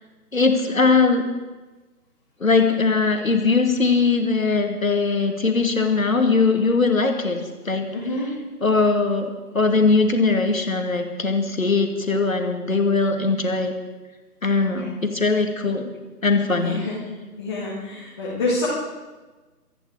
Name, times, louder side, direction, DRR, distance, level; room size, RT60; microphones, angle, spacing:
voice 1, 0.3-1.3 2.4-7.9 8.6-9.3 9.5-13.7 14.4-15.9 16.2-16.9, left 4 dB, 55° left, 5 dB, 2.4 m, -20 dB
voice 2, 7.9-8.3 14.6-15.0 16.6-17.0 17.4-18.7, left 2 dB, 15° left, -8 dB, 2.0 m, -27 dB
24.5 x 10.5 x 4.9 m, 1.2 s
figure-of-eight pair, 155°, 47 cm